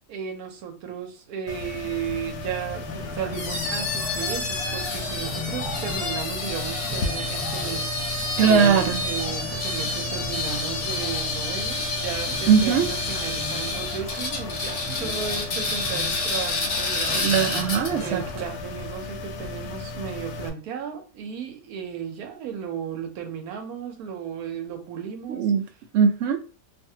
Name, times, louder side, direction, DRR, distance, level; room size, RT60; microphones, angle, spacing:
voice 1, 0.1-17.3 18.0-25.5, right 8 dB, 65° right, 1.1 m, -34 dB
sound 1, 1.5-20.5, left 2 dB, 70° left, 1.0 m, -35 dB
sound 2, 2.8-18.6, left 2 dB, 5° right, 0.9 m, -39 dB
sound 3, 3.3-18.1, left 3 dB, 85° left, 0.4 m, -29 dB
voice 2, 8.4-9.1 12.5-12.9 17.2-18.2 25.3-25.6 25.9-26.4, right 6 dB, 85° right, 0.6 m, -20 dB
2.7 x 2.5 x 2.7 m
omnidirectional pair, 1.9 m